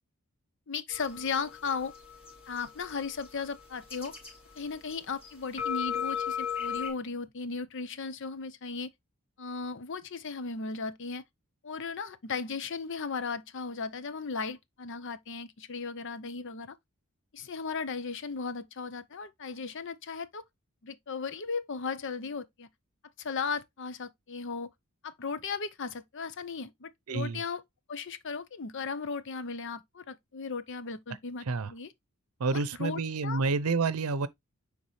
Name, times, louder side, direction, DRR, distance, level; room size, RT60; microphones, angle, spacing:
voice 1, 0.7-1.9 2.5-4.2 4.6-8.9 9.4-11.2 11.6-16.8 17.3-20.4 20.8-22.7 23.2-24.7 25.0-27.6 27.9-31.9 32.5-33.4, left 5 dB, 60° left, 0.7 m, -36 dB
sound 1, 0.9-5.0 5.2-6.9, left 8 dB, 25° left, 3.4 m, -37 dB
voice 2, 27.1-27.4 31.4-31.7 32.4-34.3, right 4 dB, 90° right, 0.6 m, -29 dB
9.7 x 3.7 x 3.1 m
head